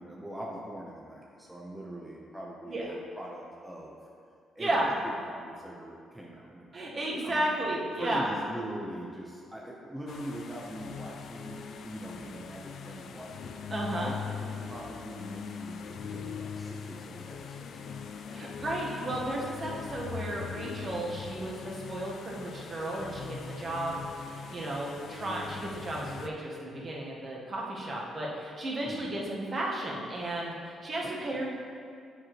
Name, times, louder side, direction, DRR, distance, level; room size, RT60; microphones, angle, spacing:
voice 1, 0.0-4.0 4.5-7.4 8.0-13.5 13.8-18.2 28.8-29.1 31.0-31.1, right 1 dB, 5° right, -4 dB, 0.7 m, -42 dB
voice 2, 4.6-4.9 6.7-8.3 13.7-14.1 18.3-31.5, right 1 dB, 40° right, -3 dB, 1.2 m, -33 dB
sound 1, 10.1-26.3, left 6 dB, 65° left, 0.3 m, -41 dB
7.3 x 4.7 x 3.0 m, 2.3 s
cardioid pair, 90°, 0 cm